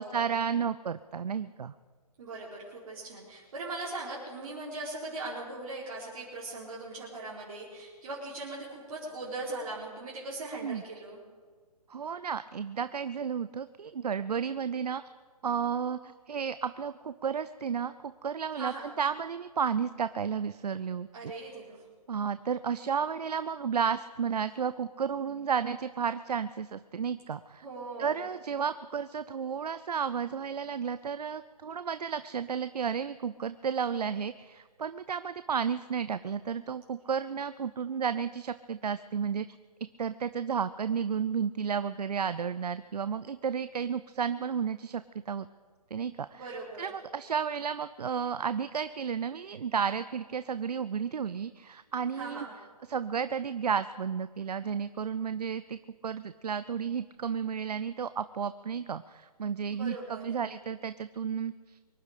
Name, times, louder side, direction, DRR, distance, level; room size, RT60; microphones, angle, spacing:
voice 1, 0.0-1.7 10.4-10.8 11.9-15.0 15.4-21.1 22.1-27.7 28.0-39.4 40.0-45.5 45.9-52.5 52.9-55.8 56.0-61.8, right 7 dB, 75° right, 13 dB, 0.6 m, -32 dB
voice 2, 2.2-11.2 18.5-18.9 21.1-21.8 27.6-28.2 46.3-46.9 52.2-52.5 59.7-60.4, right 2 dB, 55° right, -6 dB, 4.3 m, -40 dB
24.0 x 11.0 x 5.1 m, 1.5 s
hypercardioid pair, 145°, 20 cm